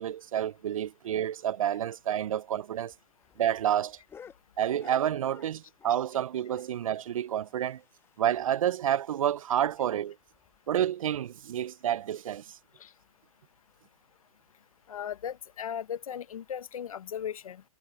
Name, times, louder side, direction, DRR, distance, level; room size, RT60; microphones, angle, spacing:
voice 1, 0.0-2.9 3.4-4.0 4.6-7.8 8.2-10.2 10.7-12.6, right 10 dB, 65° right, 0.6 m, -29 dB
sound 1, 2.7-6.1 6.4-8.4 8.7-8.8 9.1-9.2 9.6-9.7 10.3-10.6 11.4-11.5, left 7 dB, 10° left, 1.4 m, -54 dB
voice 2, 14.9-17.6, left 8 dB, 65° left, 1.1 m, -37 dB
hypercardioid pair, 130°, 19 cm